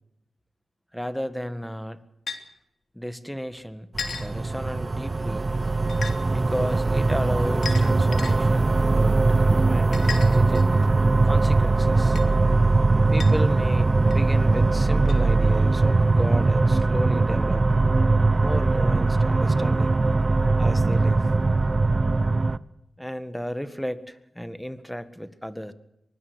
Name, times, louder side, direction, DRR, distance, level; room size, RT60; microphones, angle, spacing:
voice 1, 0.9-2.0 2.9-3.9 4.2-5.4 6.3-10.7 11.2-12.2 13.1-17.7 18.4-20.0 20.6-21.3 23.0-25.7, equal, 5° left, 12 dB, 1.8 m, -33 dB
sound 1, 2.3-2.4 4.0-4.3 5.9-6.2 7.6-8.3 9.9-10.8 12.2-12.3 13.2-13.3 14.1-14.2 15.1-15.2, left 5 dB, 75° left, 3.3 m, -33 dB
sound 2, 3.9-22.6, right 3 dB, 35° right, 0.9 m, -21 dB
24.0 x 20.0 x 6.4 m, 0.85 s
cardioid pair, 70°, 0 cm